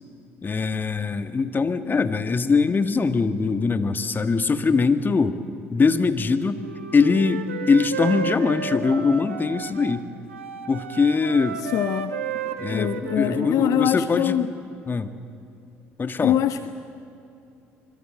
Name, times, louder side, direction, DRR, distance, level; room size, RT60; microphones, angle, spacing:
voice 1, 0.4-5.4 5.7-6.6 6.9-10.1 10.7-11.6 12.6-14.4 14.9-15.1 16.0-16.4, left 4 dB, 30° left, 10 dB, 1.6 m, -22 dB
Wind instrument woodwind instrument, 6.5-10.0 10.3-13.8, right 6 dB, 85° right, 1.3 m, -33 dB
voice 2, 11.7-12.1 12.7-14.5 16.2-16.7, left 11 dB, 55° left, 12 dB, 0.7 m, -23 dB
25.5 x 24.5 x 7.7 m, 2.7 s
figure-of-eight pair, 55°, 7 cm